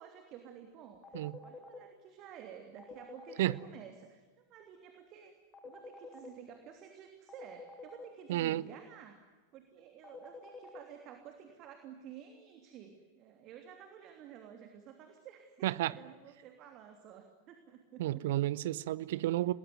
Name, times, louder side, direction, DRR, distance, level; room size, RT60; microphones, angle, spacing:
voice 1, 0.0-5.3 5.6-18.3, right 9 dB, 35° right, 3.1 m, -52 dB
sound 1, 1.0-1.8 2.8-3.5 5.5-6.3 7.3-8.0 10.0-10.8, left 4 dB, 20° left, 3.7 m, -48 dB
voice 2, 8.3-8.6 15.6-15.9 18.0-19.5, right 15 dB, 55° right, 0.8 m, -31 dB
29.5 x 21.0 x 9.5 m
figure-of-eight pair, 90°, 0 cm